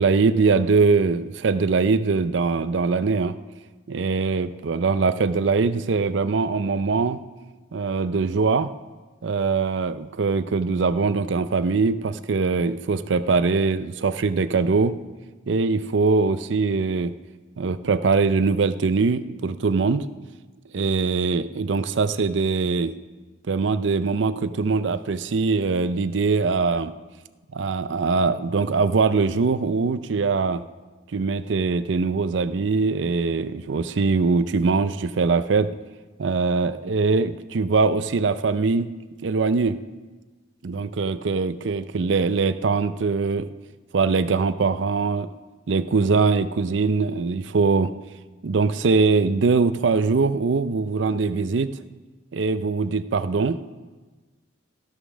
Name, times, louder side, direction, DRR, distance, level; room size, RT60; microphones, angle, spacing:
voice 1, 0.0-3.3 3.9-7.2 7.7-8.7 9.2-15.0 15.5-17.1 17.6-20.1 20.7-22.9 23.5-26.9 27.5-30.6 31.1-35.7 36.2-38.9 39.2-39.8 40.6-43.5 43.9-45.3 45.7-47.9 48.4-51.7 52.3-53.6, right 4 dB, 70° right, 13 dB, 0.5 m, -22 dB
13.0 x 6.8 x 6.2 m, 1.3 s
head